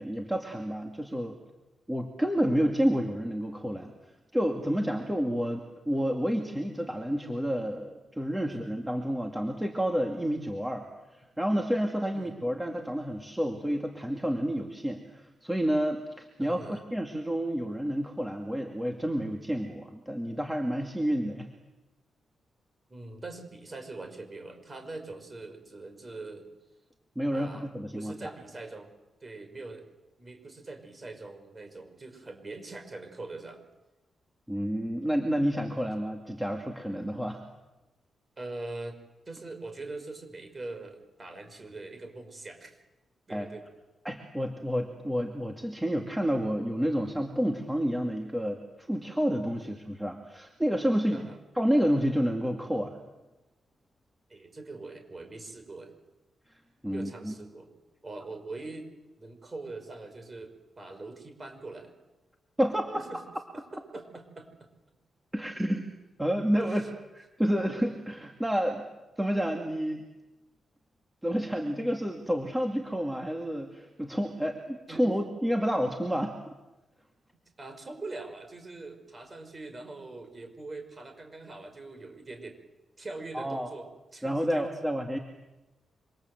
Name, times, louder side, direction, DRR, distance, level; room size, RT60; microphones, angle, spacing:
voice 1, 0.0-1.4 1.9-3.9 4.3-10.9 11.1-21.5 27.2-28.3 34.5-37.4 43.3-43.5 44.0-48.6 48.9-51.3 51.5-53.0 56.8-57.3 62.6-63.0 65.3-65.8 66.2-66.8 67.2-68.9 69.2-70.0 71.2-76.3 83.3-83.7 84.2-85.2, equal, 5° right, 2 dB, 2.4 m, -29 dB
voice 2, 16.4-16.8 22.9-26.5 27.3-27.7 27.9-28.9 29.2-29.9 30.2-33.6 38.4-39.0 39.3-42.8 43.3-43.7 49.6-49.8 51.1-51.4 54.3-55.9 56.9-57.7 58.0-61.9 62.9-63.2 63.7-64.7 66.6-66.9 74.9-75.2 77.6-82.6 83.0-84.9, right 2 dB, 25° right, 7 dB, 5.6 m, -43 dB
27.5 x 26.0 x 8.0 m, 1.0 s
wide cardioid pair, 130°, 0 cm